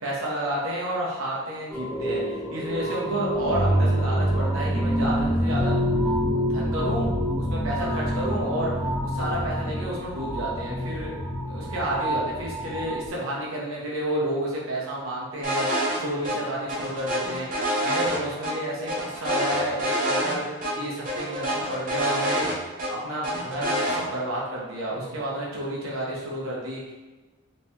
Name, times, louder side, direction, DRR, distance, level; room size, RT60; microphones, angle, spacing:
voice 1, 0.0-5.8 6.3-8.7 9.0-11.1 11.5-22.5 22.9-26.9, right 1 dB, 80° right, -4 dB, 1.0 m, -31 dB
sound 1, 1.7-13.1, equal, 5° left, 0.4 m, -26 dB
sound 2, 15.4-16.0 16.2-16.4 16.7-18.5 18.9-20.4 20.6-20.7 21.1-22.9 23.2-24.0, equal, 40° right, 0.6 m, -26 dB
3.4 x 3.3 x 2.8 m, 1.2 s
head